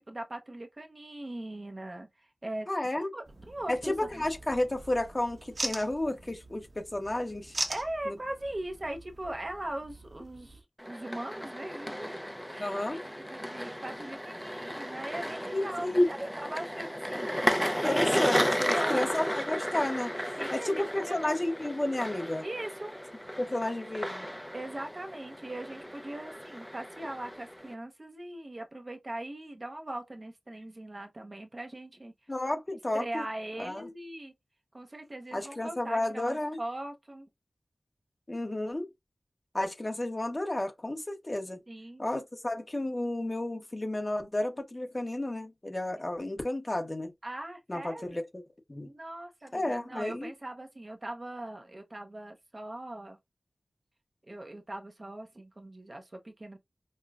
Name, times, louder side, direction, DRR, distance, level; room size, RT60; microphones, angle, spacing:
voice 1, 0.0-2.7 3.1-4.2 7.7-17.3 17.8-19.1 20.4-21.4 22.4-22.9 24.5-32.1 32.9-34.3 34.7-37.3 41.7-42.0 47.2-48.2 48.8-53.2 54.2-56.6, right 1 dB, 40° right, 0.8 m, -40 dB
voice 2, 2.7-3.1 3.7-7.6 8.1-8.2 12.6-13.0 15.5-16.1 17.8-20.1 20.5-22.4 23.4-24.3 32.3-33.2 33.6-33.9 35.3-36.6 38.3-38.9 39.5-41.6 42.0-47.1 47.7-48.4 48.7-48.9 49.5-50.3, left 1 dB, 30° left, 1.0 m, -32 dB
sound 1, 3.3-10.6, right 2 dB, 55° right, 1.1 m, -41 dB
sound 2, 10.8-27.7, equal, 5° left, 0.5 m, -34 dB
5.3 x 2.2 x 2.4 m
wide cardioid pair, 80°, 0 cm